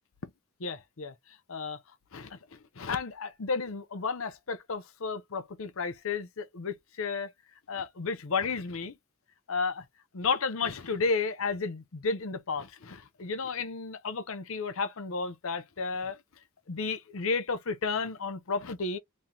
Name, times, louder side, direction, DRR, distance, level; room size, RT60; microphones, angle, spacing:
voice 1, 0.6-1.1 1.5-1.8 2.1-7.3 7.7-9.0 9.5-9.8 10.1-16.2 16.7-19.0, left 4 dB, 70° left, 0.7 m, -32 dB
3.1 x 2.8 x 3.7 m
head